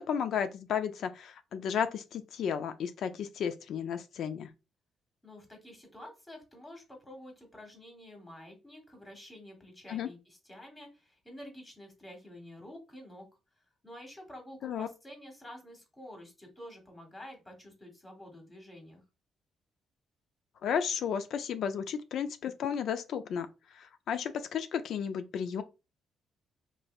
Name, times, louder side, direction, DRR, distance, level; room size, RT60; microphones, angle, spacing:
voice 1, 0.0-4.5 9.9-10.1 14.6-14.9 20.6-23.5 23.7-25.6, left 7 dB, 70° left, 0.3 m, -33 dB
voice 2, 5.2-13.3 13.8-19.0, left 1 dB, 20° left, 1.4 m, -49 dB
3.1 x 2.6 x 2.3 m
cardioid pair, 90°, 0 cm